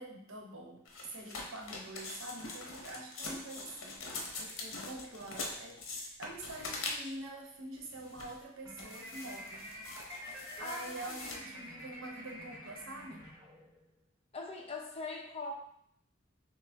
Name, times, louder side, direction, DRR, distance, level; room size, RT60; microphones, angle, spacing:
voice 1, 0.0-9.7 10.6-13.3, right 1 dB, 70° right, 1 dB, 0.8 m, -46 dB
sound 1, 0.9-7.3 7.9-8.4 8.8-11.4, left 3 dB, 75° left, 0.8 m, -43 dB
sound 2, 8.6-13.9, equal, 15° right, 0.9 m, -48 dB
voice 2, 10.6-11.5 14.3-15.5, left 3 dB, 30° left, 0 dB, 0.6 m, -42 dB
6.0 x 2.0 x 3.4 m, 0.67 s
head